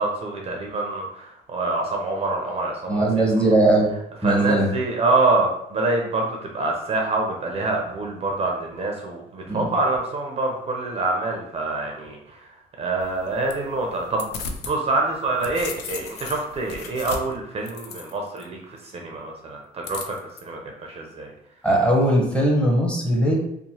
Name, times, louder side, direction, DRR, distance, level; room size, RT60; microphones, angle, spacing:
voice 1, 0.0-3.5 4.2-12.4 12.8-14.3 14.6-20.2 20.4-21.3, right 2 dB, 35° right, 0 dB, 0.5 m, -26 dB
voice 2, 2.9-3.9 4.2-4.7 9.5-9.6 21.6-23.4, right 1 dB, 5° left, -2 dB, 0.7 m, -19 dB
sound 1, 13.0-14.8 15.1-18.4 19.8-20.4, left 5 dB, 80° left, 0.4 m, -36 dB
2.9 x 2.0 x 2.7 m, 0.76 s
cardioid pair, 110°, 17 cm